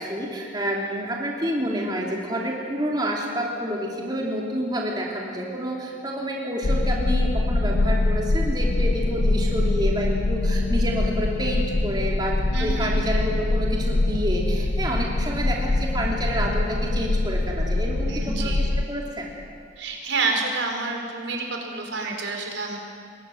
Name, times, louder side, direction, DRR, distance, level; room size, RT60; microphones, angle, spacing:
voice 1, 0.0-19.3, equal, 20° right, -2 dB, 3.1 m, -29 dB
sound 1, 6.6-18.8, left 2 dB, 55° left, 0.6 m, -23 dB
voice 2, 12.5-12.9 18.1-18.6 19.8-22.8, right 3 dB, 75° right, 2 dB, 4.9 m, -28 dB
29.5 x 22.5 x 8.0 m, 2.2 s
head